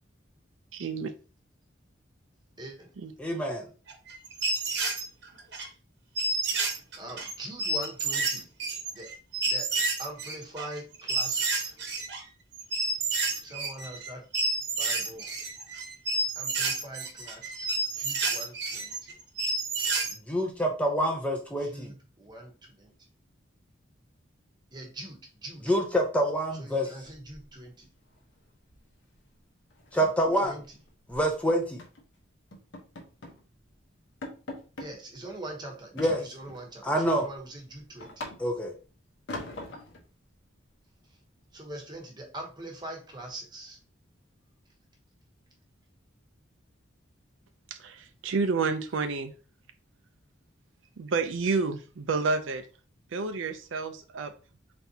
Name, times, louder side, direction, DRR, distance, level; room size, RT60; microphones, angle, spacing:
voice 1, 2.6-2.9 7.0-8.5 8.9-9.1 9.4-9.7 10.0-11.8 13.4-14.3 14.8-15.4 16.3-19.2 21.6-23.1 24.7-25.7 26.5-27.9 30.4-30.7 34.8-38.3 41.1-41.2 41.5-43.8, right 1 dB, 20° right, 1 dB, 0.9 m, -43 dB
voice 2, 3.2-3.7 20.3-21.9 25.7-26.9 29.9-30.5 31.1-31.8 36.0-36.2 36.8-37.3 38.4-38.7, equal, 5° left, 1 dB, 0.5 m, -26 dB
sound 1, 3.9-5.7 6.2-12.2 12.6-14.1 14.3-20.1, right 3 dB, 55° right, 0.9 m, -30 dB
sound 2, 27.0-27.9 28.1-28.4 28.7-28.9 29.2-29.3 29.7-31.3 31.8-32.0 32.5-33.4 33.8-33.9 34.2-34.9 36.0-36.7 37.1-38.7 39.3-40.0, left 2 dB, 70° left, 1.0 m, -42 dB
voice 3, 47.7-49.3 51.0-52.6 53.1-54.3, right 4 dB, 75° right, 8 dB, 0.5 m, -29 dB
4.1 x 3.4 x 2.7 m, 0.35 s
head